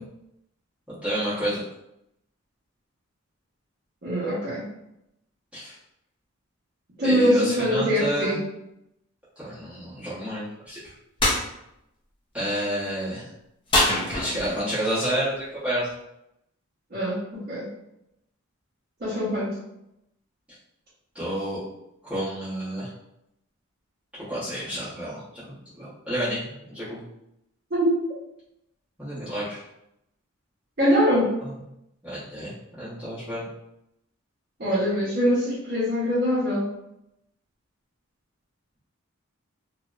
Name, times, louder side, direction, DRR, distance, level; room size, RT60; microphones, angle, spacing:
voice 1, 0.9-1.6 5.5-5.8 7.0-8.4 9.4-10.9 12.3-13.3 14.1-15.9 21.1-21.6 22.0-22.9 24.3-27.0 29.0-29.6 31.4-31.5 32.0-33.5, equal, 5° right, -13 dB, 0.8 m, -30 dB
voice 2, 4.0-4.6 7.0-8.4 16.9-17.7 19.0-19.6 27.7-28.0 30.8-31.3 34.6-36.7, equal, 45° right, -11 dB, 0.7 m, -23 dB
sound 1, 11.2-11.4 13.7-14.7, left 1 dB, 25° left, 0.4 m, -23 dB
2.8 x 2.0 x 2.3 m, 0.84 s
head